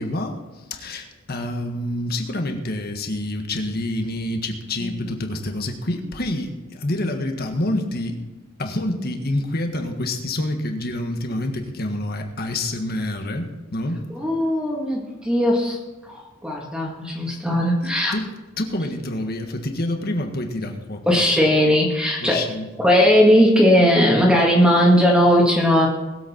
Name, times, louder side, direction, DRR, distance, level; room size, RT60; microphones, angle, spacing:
voice 1, 0.0-8.2 8.6-14.0 17.8-18.3 18.6-21.2 22.2-22.7, left 1 dB, 50° left, 4 dB, 1.6 m, -27 dB
voice 2, 4.8-5.1 14.1-18.1 21.1-22.5 22.8-25.9, equal, 5° right, -2 dB, 1.8 m, -18 dB
20.5 x 8.1 x 4.4 m, 1.1 s
head